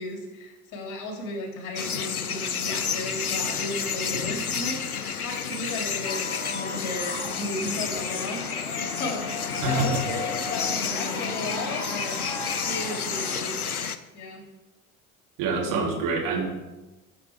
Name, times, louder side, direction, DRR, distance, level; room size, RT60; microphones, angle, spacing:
voice 1, 0.0-13.5 14.1-14.4, left 2 dB, 45° left, 1 dB, 2.9 m, -35 dB
sound 1, 1.7-14.0, left 6 dB, 85° left, 0.6 m, -30 dB
sound 2, 6.0-13.3, left 3 dB, 10° left, 4.2 m, -37 dB
voice 2, 9.6-10.0 15.4-16.5, right 3 dB, 50° right, 0 dB, 2.8 m, -26 dB
14.0 x 6.4 x 4.6 m, 1.1 s
figure-of-eight pair, 70°, 43 cm